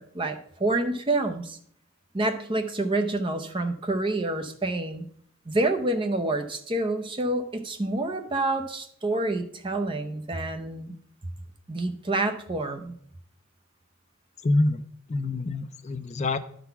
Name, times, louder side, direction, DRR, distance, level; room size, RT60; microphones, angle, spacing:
voice 1, 0.0-1.6 2.1-5.0 5.5-10.9 11.7-13.0, right 2 dB, 25° right, 6 dB, 0.6 m, -28 dB
voice 2, 14.4-14.8 15.1-16.4, left 2 dB, 30° left, 11 dB, 0.4 m, -26 dB
11.0 x 4.0 x 5.6 m, 0.64 s
head